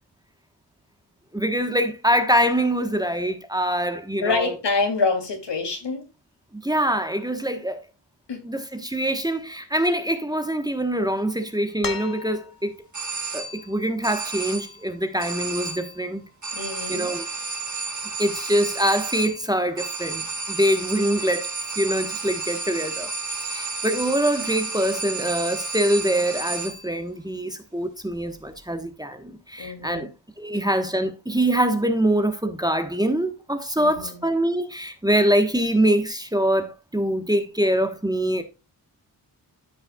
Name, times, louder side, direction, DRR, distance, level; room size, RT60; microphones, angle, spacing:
voice 1, 1.3-4.6 6.5-7.8 8.4-12.7 13.3-16.3 16.9-17.3 18.2-23.1 23.4-30.1 30.4-38.4, right 1 dB, 10° right, 1.1 m, -24 dB
voice 2, 4.2-6.1 8.3-8.4 16.5-17.1 29.6-30.1 33.8-34.3, left 4 dB, 85° left, 2.7 m, -26 dB
sound 1, 11.8-12.8 14.4-14.5, left 5 dB, 55° left, 1.3 m, -34 dB
sound 2, 12.9-13.8 14.0-14.8 15.2-16.0 16.4-27.0, right 3 dB, 45° right, 2.0 m, -32 dB
13.0 x 5.5 x 2.3 m
wide cardioid pair, 135°, 41 cm